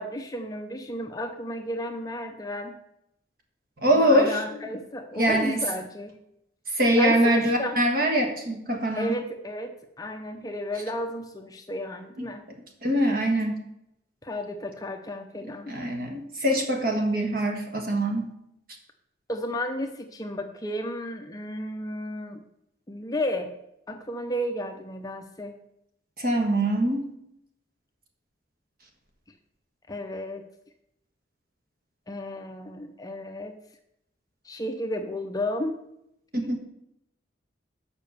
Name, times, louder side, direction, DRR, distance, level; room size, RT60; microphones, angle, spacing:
voice 1, 0.0-2.8 3.9-6.2 6.9-7.8 9.0-12.5 14.2-15.8 19.3-22.4 22.9-23.5 23.9-25.6 29.9-30.5 32.1-33.5 34.4-35.8, left 1 dB, 20° left, 5 dB, 0.6 m, -33 dB
voice 2, 3.8-4.6 5.2-5.6 6.7-9.1 12.2-12.3 12.8-13.6 15.7-18.3 26.2-27.0 36.3-36.6, right 1 dB, 50° right, 2 dB, 1.5 m, -23 dB
7.0 x 5.1 x 6.8 m, 0.80 s
head